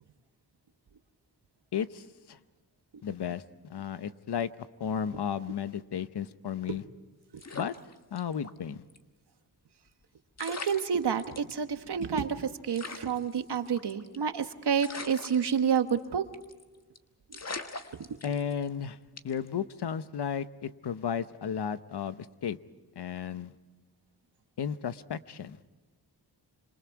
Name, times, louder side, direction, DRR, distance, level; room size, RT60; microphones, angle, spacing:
voice 1, 1.7-2.4 3.0-4.5 4.8-6.8 7.5-7.7 8.1-8.8 18.2-19.0 19.2-22.6 23.0-23.5 24.6-25.6, left 8 dB, 80° left, 13 dB, 0.9 m, -34 dB
sound 1, 7.4-8.6 8.9-9.0 10.0-10.1 10.4-11.5 12.0-12.1 12.3-12.4 12.7-14.3 14.8-16.1 16.3-16.6 17.0-17.1 17.3-18.7 19.2-19.5, left 3 dB, 40° left, 1.6 m, -41 dB
voice 2, 10.4-16.2, right 7 dB, 80° right, 8 dB, 1.4 m, -29 dB
26.5 x 26.5 x 4.7 m, 1.2 s
cardioid pair, 65°, 40 cm